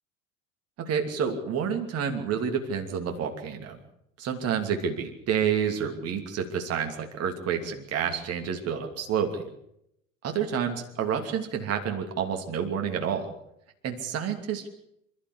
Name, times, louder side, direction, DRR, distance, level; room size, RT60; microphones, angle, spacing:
voice 1, 0.8-3.8 4.2-9.5 10.2-13.3 13.8-14.7, right 7 dB, 35° right, 4 dB, 2.9 m, -29 dB
28.0 x 13.0 x 8.3 m, 0.78 s
figure-of-eight pair, 75°, 40 cm